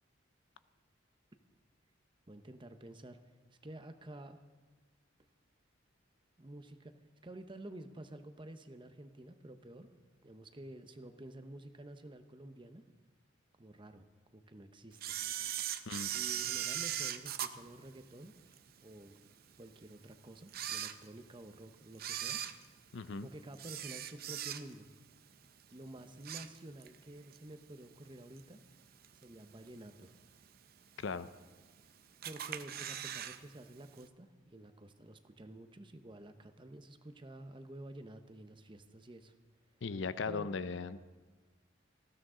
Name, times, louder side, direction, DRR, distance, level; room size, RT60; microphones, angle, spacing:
voice 1, 2.3-3.2 3.6-4.4 6.4-6.9 7.2-9.9 10.2-12.8 13.6-14.1 14.3-15.2 16.1-18.3 18.8-19.2 19.6-22.4 23.2-24.9 25.7-28.6 29.2-30.1 32.2-39.3 40.3-40.6, right 1 dB, 25° right, 8 dB, 0.8 m, -50 dB
Camera, 15.0-18.6 19.1-19.2 19.9-20.0 20.4-21.5 21.9-24.9 25.3-25.6 25.9-27.0 27.3-27.4 28.4-28.5 29.0-29.4 29.9-30.0 30.2-30.3 30.4-30.5 31.3-31.8 32.2-33.4 33.6-33.7 34.0-34.1, right 11 dB, 50° right, 0.6 m, -39 dB
voice 2, 22.9-23.3 31.0-31.3 39.8-41.0, left 4 dB, 65° left, 13 dB, 0.5 m, -38 dB
19.0 x 15.0 x 3.8 m, 1.3 s
head